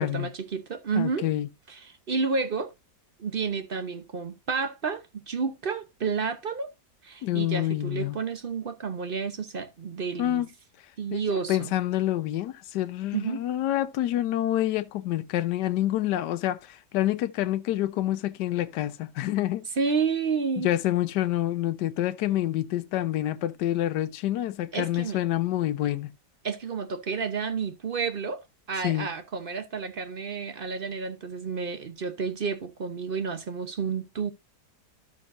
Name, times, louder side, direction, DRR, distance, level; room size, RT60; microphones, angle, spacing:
voice 1, 0.0-1.3 1.7-2.7 3.2-6.7 7.0-10.4 11.0-11.7 13.1-13.4 19.8-20.7 24.7-25.2 26.4-34.3, right 5 dB, 45° right, 0.7 m, -30 dB
voice 2, 0.9-1.5 7.2-8.2 10.2-10.5 11.1-11.2 11.5-19.6 20.6-26.1 28.8-29.1, left 13 dB, 80° left, 1.3 m, -27 dB
13.0 x 6.2 x 2.5 m
omnidirectional pair, 1.8 m